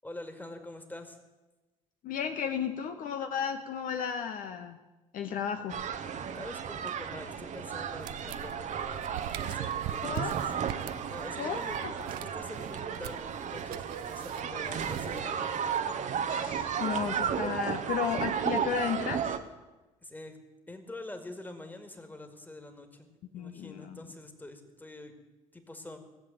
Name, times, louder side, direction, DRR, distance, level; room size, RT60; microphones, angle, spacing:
voice 1, 0.0-1.2 6.4-10.5 11.0-15.7 17.7-17.9 20.0-20.4 20.7-23.1 23.3-25.1 25.5-26.0, left 2 dB, 10° left, 6 dB, 2.1 m, -45 dB
voice 2, 2.0-4.8 5.1-5.8 10.0-10.4 11.4-11.9 16.3-19.4 23.3-24.0, left 7 dB, 50° left, 6 dB, 0.9 m, -34 dB
sound 1, 5.7-19.4, right 7 dB, 45° right, 1.0 m, -34 dB
sound 2, 8.0-15.6, right 13 dB, 65° right, 0.6 m, -43 dB
16.5 x 7.7 x 9.0 m, 1.1 s
figure-of-eight pair, 55°, 18 cm